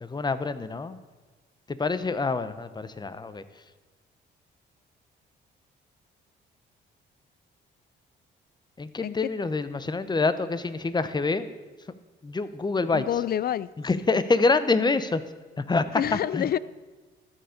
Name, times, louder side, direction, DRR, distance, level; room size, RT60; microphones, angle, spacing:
voice 1, 0.0-1.0 1.7-3.4 8.8-11.5 12.2-13.0 13.8-15.2 15.6-16.5, left 3 dB, 20° left, 13 dB, 0.8 m, -26 dB
voice 2, 12.9-13.7 16.0-16.6, left 10 dB, 50° left, 19 dB, 0.5 m, -27 dB
13.0 x 7.1 x 6.5 m, 1.3 s
cardioid pair, 90°, 20 cm